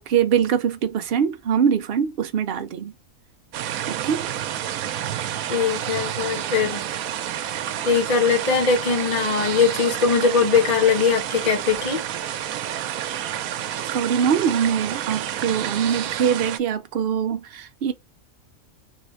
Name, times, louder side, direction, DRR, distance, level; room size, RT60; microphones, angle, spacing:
voice 1, 0.0-2.9 3.9-4.3 13.9-17.9, right 8 dB, 55° right, 0.7 m, -23 dB
sound 1, 3.5-16.6, right 10 dB, 80° right, 1.0 m, -29 dB
voice 2, 5.5-6.8 7.8-12.0, left 5 dB, 35° left, 1.2 m, -21 dB
3.4 x 2.5 x 3.1 m
omnidirectional pair, 1.5 m